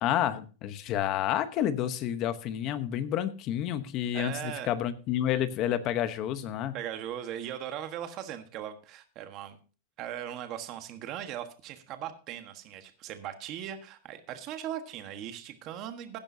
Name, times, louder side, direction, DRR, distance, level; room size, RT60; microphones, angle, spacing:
voice 1, 0.0-6.7, left 11 dB, 35° left, 12 dB, 1.0 m, -29 dB
voice 2, 4.1-4.7 6.7-9.6 10.0-16.2, right 10 dB, 35° right, 8 dB, 1.4 m, -39 dB
15.5 x 10.5 x 2.8 m, 0.35 s
supercardioid pair, 160°, 0 cm